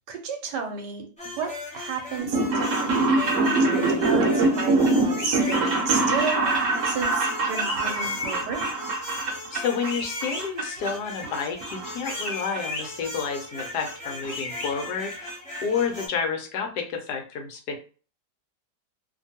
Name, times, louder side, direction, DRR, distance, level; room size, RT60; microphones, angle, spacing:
voice 1, 0.1-1.1 1.4-8.6, right 5 dB, 80° right, 5 dB, 1.2 m, -32 dB
sound 1, 1.2-16.1, left 2 dB, 10° left, 0.4 m, -38 dB
sound 2, 2.2-9.9 10.2-10.9 11.2-12.3 12.6-12.7 13.6-13.7 13.9-14.0 14.2-14.3 14.6-14.9 15.3-15.4 15.6-15.7, right 2 dB, 55° right, 1.0 m, -24 dB
sound 3, 5.2-5.6 7.5-8.4 9.8-10.4 12.0-12.8 14.2-14.7, left 3 dB, 45° left, 0.9 m, -33 dB
voice 2, 9.5-17.8, left 6 dB, 75° left, 4 dB, 1.2 m, -30 dB
3.0 x 2.2 x 2.7 m, 0.38 s
omnidirectional pair, 1.8 m